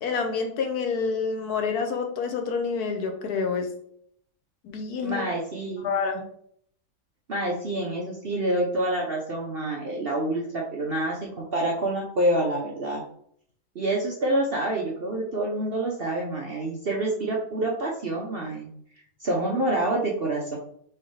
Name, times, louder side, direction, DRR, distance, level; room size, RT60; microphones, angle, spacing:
voice 1, 0.0-3.7 4.6-5.2 5.8-6.2, left 5 dB, 70° left, 5 dB, 1.1 m, -28 dB
voice 2, 5.0-5.9 7.3-13.0 13.7-18.7 19.2-20.6, right 1 dB, 55° right, -2 dB, 0.6 m, -27 dB
4.6 x 3.6 x 3.2 m, 0.66 s
omnidirectional pair, 1.9 m